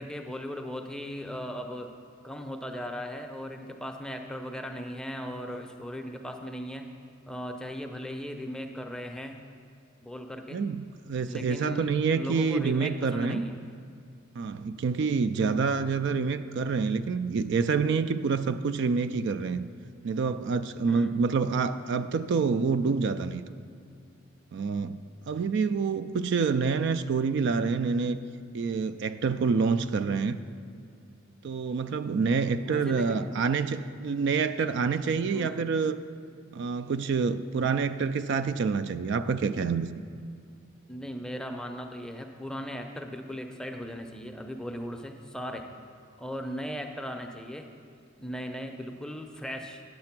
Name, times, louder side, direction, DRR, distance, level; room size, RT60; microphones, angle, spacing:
voice 1, 0.0-1.9 2.2-6.8 7.3-9.4 10.0-10.6 11.3-13.6 15.4-15.6 20.9-21.2 32.6-33.3 35.3-35.6 40.9-45.7 46.2-47.7 48.2-49.8, equal, 5° left, 4 dB, 0.6 m, -37 dB
voice 2, 10.5-13.4 14.4-19.6 20.0-23.4 24.5-25.0 25.3-28.2 28.5-30.4 31.4-36.0 36.5-39.9, right 5 dB, 60° right, 11 dB, 0.3 m, -27 dB
9.5 x 7.6 x 5.9 m, 2.4 s
head